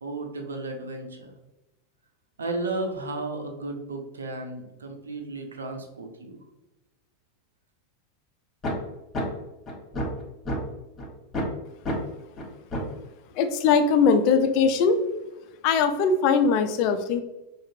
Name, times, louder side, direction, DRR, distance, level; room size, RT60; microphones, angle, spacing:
voice 1, 0.0-1.3 2.4-6.4, right 2 dB, 80° right, 4 dB, 0.5 m, -34 dB
sound 1, 8.6-8.7 9.1-9.2 9.7-10.6 11.0-11.1 11.3-11.5 11.9-12.0 12.4-12.5 12.7-12.9, equal, 25° left, 1.1 m, -28 dB
voice 2, 13.4-15.0 15.6-17.2, left 5 dB, 50° left, 8 dB, 0.4 m, -21 dB
4.9 x 2.0 x 2.6 m, 0.99 s
figure-of-eight pair, 90°, 0 cm